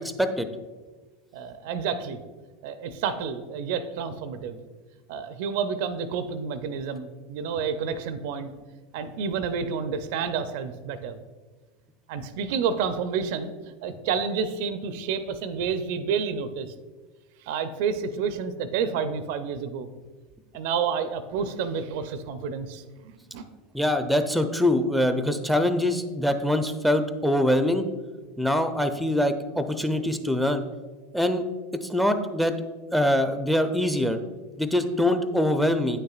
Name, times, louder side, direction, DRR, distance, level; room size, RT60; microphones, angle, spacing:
voice 1, 1.3-2.2 2.6-4.6 5.1-8.5 8.9-11.2 12.1-13.5 13.8-16.7 17.4-19.9 20.5-23.4, right 6 dB, 60° right, 11 dB, 0.5 m, -29 dB
voice 2, 23.7-27.8 28.4-30.6 31.1-31.4 31.8-32.5 32.9-34.2 34.6-36.0, left 1 dB, ahead, 8 dB, 0.5 m, -23 dB
9.3 x 6.6 x 2.4 m, 1.3 s
hypercardioid pair, 85°, 0 cm